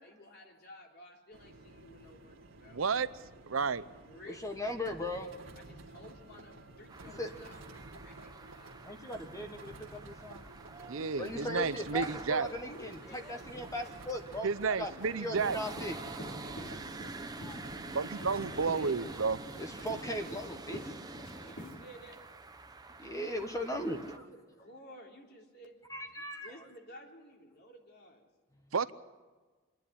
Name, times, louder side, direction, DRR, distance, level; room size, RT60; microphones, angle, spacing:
voice 1, 0.0-2.8 4.1-4.5 5.5-9.0 10.9-11.8 12.6-13.9 14.8-15.3 16.2-17.1 18.5-19.4 21.3-22.2 23.9-25.8 26.1-28.3, equal, 55° left, 0 dB, 3.8 m, -54 dB
sound 1, 1.3-20.3, right 2 dB, 65° right, 1.9 m, -52 dB
voice 2, 2.7-3.1 3.5-3.8 10.9-12.5 14.4-15.6 17.9-19.4 28.7-28.9, right 5 dB, 90° right, 15 dB, 0.8 m, -31 dB
voice 3, 4.3-5.3 7.2-7.3 8.8-10.4 10.7-10.8 11.2-14.5 14.8-14.9 15.2-16.0 16.3-16.4 17.3-17.6 19.6-21.4 23.0-24.2 25.9-26.5, left 1 dB, 15° left, 5 dB, 1.3 m, -38 dB
sound 2, 6.9-24.2, right 3 dB, 20° right, 0.9 m, -47 dB
sound 3, 15.0-21.7, equal, 80° left, 5.3 m, -47 dB
27.0 x 10.5 x 9.9 m, 1.3 s
head